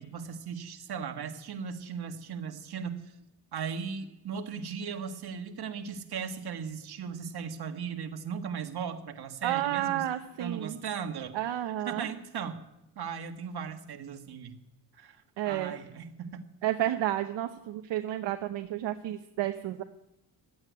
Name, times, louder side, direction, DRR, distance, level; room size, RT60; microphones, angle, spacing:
voice 1, 0.0-3.1 3.5-10.0 10.4-11.4 11.6-12.6 12.9-14.6 14.9-16.4 16.9-17.0, right 6 dB, 60° right, 5 dB, 1.8 m, -37 dB
voice 2, 9.4-10.8 11.3-12.1 15.4-15.7 16.6-19.8, right 13 dB, 75° right, 7 dB, 0.9 m, -31 dB
13.0 x 8.8 x 9.4 m, 0.86 s
cardioid pair, 85°, 44 cm